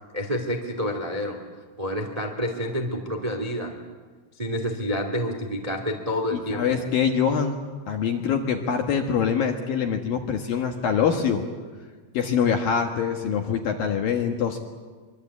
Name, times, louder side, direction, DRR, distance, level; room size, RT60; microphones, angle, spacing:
voice 1, 0.1-1.4 1.8-3.7 4.4-6.8, equal, 80° right, 4 dB, 0.3 m, -28 dB
voice 2, 6.3-11.4 12.1-14.6, left 7 dB, 65° left, 4 dB, 2.3 m, -24 dB
24.5 x 24.0 x 8.3 m, 1.5 s
omnidirectional pair, 5.9 m